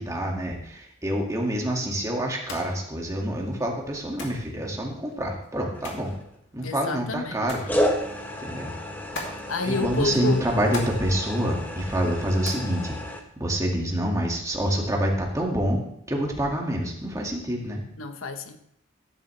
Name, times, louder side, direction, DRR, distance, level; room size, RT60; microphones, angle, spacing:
voice 1, 0.0-6.1 6.5-7.6 8.4-8.7 9.6-13.0 13.4-15.8 16.1-17.8, equal, 15° right, 2.1 m, -27 dB
sound 1, 2.3-13.8, left 2 dB, 60° left, 2.6 m, -43 dB
sound 2, 5.7-6.4 7.7-13.2, equal, 10° left, 1.1 m, -31 dB
voice 2, 6.6-7.6 9.5-10.5 18.0-18.6, left 3 dB, 85° left, 1.0 m, -29 dB
13.5 x 11.0 x 3.3 m
head